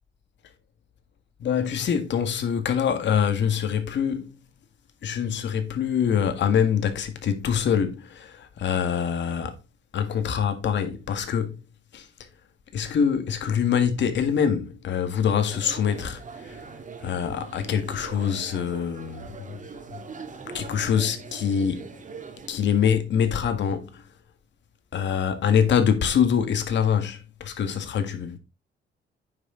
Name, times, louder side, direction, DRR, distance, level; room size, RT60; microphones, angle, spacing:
voice 1, 1.4-4.4 5.0-9.5 9.9-11.5 11.9-12.0 12.7-16.6 17.0-19.6 20.5-21.9 22.5-24.0 24.9-28.4, left 7 dB, 65° left, 1.8 m, -24 dB
sound 1, 15.5-22.5, right 4 dB, 40° right, 2.1 m, -42 dB
9.3 x 6.0 x 3.9 m
cardioid pair, 90°, 20 cm